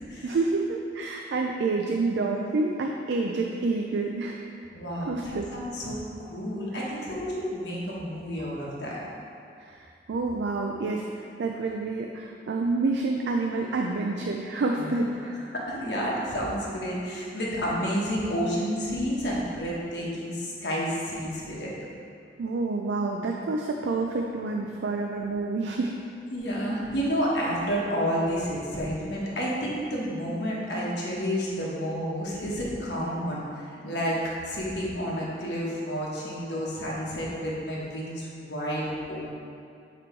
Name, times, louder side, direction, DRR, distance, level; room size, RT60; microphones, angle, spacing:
voice 1, 0.2-4.4 5.1-5.5 9.6-9.8 10.1-11.1 11.4-15.3 22.4-25.9, right 3 dB, 75° right, 1 dB, 0.4 m, -28 dB
voice 2, 4.7-6.0 6.3-9.0 14.8-14.9 15.5-21.7 26.3-33.4 33.8-39.4, equal, 75° left, -5 dB, 1.2 m, -30 dB
7.6 x 3.1 x 4.4 m, 2.4 s
head